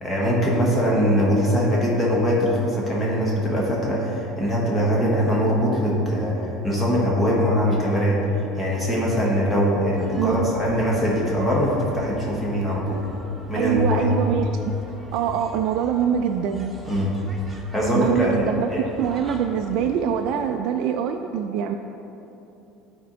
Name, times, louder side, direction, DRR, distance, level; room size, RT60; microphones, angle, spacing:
voice 1, 0.0-8.2 8.6-13.0 13.5-14.1 16.9-17.1 17.7-18.4 18.7-18.8, equal, 15° left, -4 dB, 1.3 m, -22 dB
sound 1, 9.9-20.3, right 1 dB, 10° right, 0.8 m, -42 dB
voice 2, 10.2-10.5 13.6-14.7 15.1-16.7 18.0-21.8, right 8 dB, 60° right, 4 dB, 0.3 m, -24 dB
10.0 x 4.4 x 3.9 m, 3.0 s
cardioid pair, 140°, 0 cm